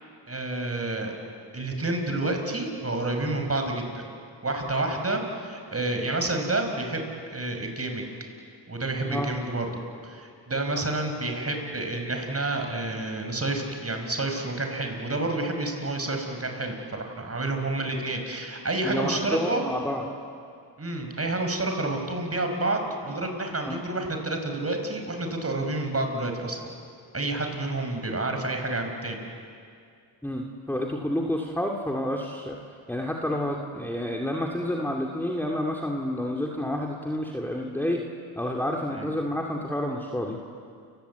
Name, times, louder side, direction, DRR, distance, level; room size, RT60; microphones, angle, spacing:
voice 1, 0.3-1.1 1.5-4.0 4.4-8.1 8.7-19.6 20.8-26.6 27.1-29.2 38.9-39.1, right 2 dB, 30° right, 4 dB, 5.4 m, -29 dB
voice 2, 18.8-20.1 23.6-23.8 30.2-32.6 32.9-38.0 38.4-40.4, left 1 dB, 5° left, 0 dB, 2.5 m, -29 dB
29.0 x 17.5 x 8.4 m, 2.3 s
cardioid pair, 60°, 48 cm